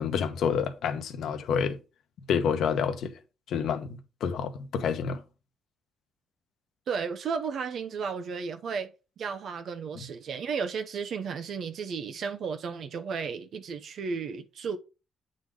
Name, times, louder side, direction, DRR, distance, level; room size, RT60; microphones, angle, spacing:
voice 1, 0.0-1.8 2.3-3.1 3.5-5.2, left 7 dB, 70° left, 1.0 m, -28 dB
voice 2, 6.9-8.9 9.2-14.8, right 5 dB, 65° right, 0.9 m, -33 dB
8.6 x 4.0 x 4.9 m
cardioid pair, 90°, 0 cm